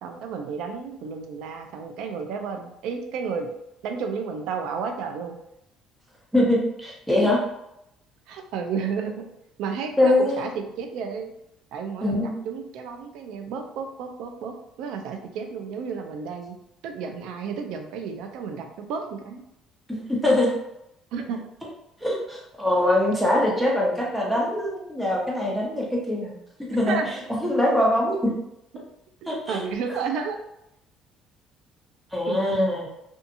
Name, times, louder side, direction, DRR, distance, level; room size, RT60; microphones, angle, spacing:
voice 1, 0.0-3.5 3.8-5.4 8.3-9.2 9.6-11.3 11.7-16.5 16.8-19.4 21.1-21.4 26.9-27.1 28.7-28.9 29.5-30.4 32.3-32.7, right 6 dB, 75° right, 5 dB, 0.4 m, -32 dB
voice 2, 6.3-7.4 10.0-10.4 12.0-12.3 19.9-20.5 22.0-26.4 26.7-27.0 27.4-28.3 29.3-29.6 32.1-32.9, left 1 dB, 5° right, -4 dB, 1.1 m, -23 dB
2.6 x 2.4 x 2.6 m, 0.81 s
supercardioid pair, 90°, 0 cm